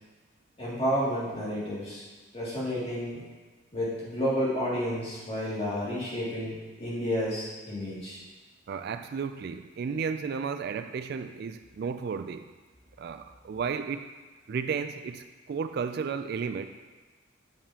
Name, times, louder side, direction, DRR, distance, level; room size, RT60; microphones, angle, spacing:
voice 1, 0.6-2.0 2.3-3.2 3.7-8.2, equal, 30° left, -8 dB, 2.5 m, -31 dB
voice 2, 8.7-12.5 13.0-14.1 14.5-16.7, right 6 dB, 55° right, 9 dB, 0.3 m, -33 dB
8.7 x 6.7 x 2.9 m, 1.3 s
head